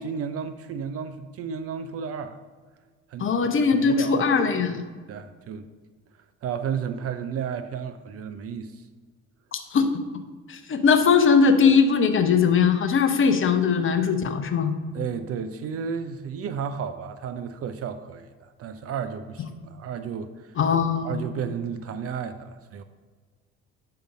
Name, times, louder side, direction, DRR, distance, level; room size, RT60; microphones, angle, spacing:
voice 1, 0.0-2.4 3.1-4.3 5.1-5.7 6.4-8.9 14.9-20.6 21.0-22.8, right 7 dB, 40° right, 10 dB, 0.4 m, -33 dB
voice 2, 3.2-4.8 9.5-9.9 10.5-14.7 20.6-21.3, left 5 dB, 30° left, 8 dB, 0.7 m, -20 dB
5.7 x 5.1 x 5.0 m, 1.5 s
hypercardioid pair, 55°, 38 cm